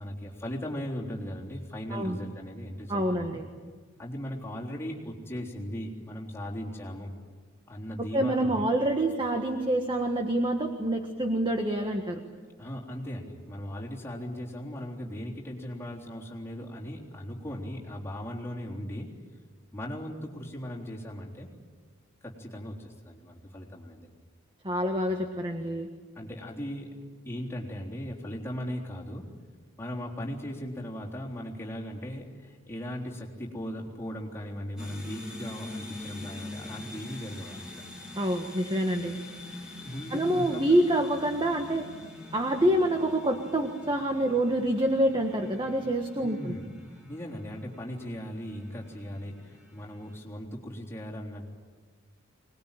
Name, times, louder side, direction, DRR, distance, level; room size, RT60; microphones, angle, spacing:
voice 1, 0.0-3.4 4.0-7.1 7.7-8.7 12.6-19.1 19.7-21.5 22.2-24.1 26.1-27.0 27.3-29.3 29.8-37.7 39.8-40.6 46.2-46.6 47.1-51.5, equal, 10° left, -3 dB, 3.6 m, -38 dB
voice 2, 2.9-3.5 8.1-12.2 24.6-25.9 38.1-39.2 40.1-41.9 42.3-46.5, right 1 dB, 20° right, 4 dB, 1.5 m, -27 dB
sound 1, 34.8-50.2, left 2 dB, 5° right, 3.6 m, -45 dB
24.5 x 20.5 x 9.2 m, 1.5 s
head